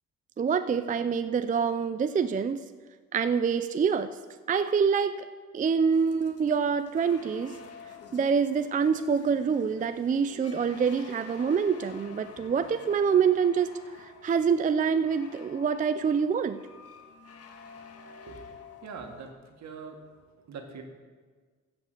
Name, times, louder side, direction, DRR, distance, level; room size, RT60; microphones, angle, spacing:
voice 1, 0.4-2.6 3.1-4.2 4.5-5.3 5.5-7.5 8.1-13.7 14.0-16.6, right 6 dB, 25° right, 11 dB, 0.4 m, -26 dB
sound 1, 5.9-19.3, left 5 dB, 55° left, 1.5 m, -50 dB
voice 2, 18.8-19.3 19.6-20.0 20.5-20.8, right 5 dB, 65° right, 4 dB, 1.8 m, -42 dB
14.0 x 5.3 x 7.8 m, 1.5 s
cardioid pair, 90°, 30 cm